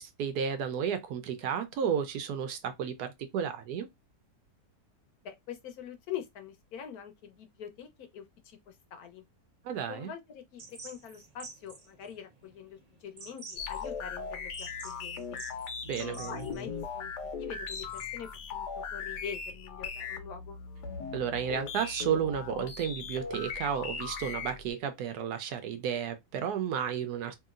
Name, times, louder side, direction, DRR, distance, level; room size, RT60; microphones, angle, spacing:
voice 1, 0.0-3.9 9.6-10.1 15.9-16.4 21.1-27.3, right 8 dB, 80° right, 1.2 m, -32 dB
voice 2, 5.2-9.2 9.9-15.4 15.9-17.1 17.4-20.6, left 8 dB, 70° left, 1.2 m, -44 dB
sound 1, 10.6-18.4, right 4 dB, 50° right, 0.4 m, -50 dB
sound 2, 13.6-24.7, left 5 dB, 85° left, 1.3 m, -39 dB
3.0 x 2.8 x 2.4 m
omnidirectional pair, 1.7 m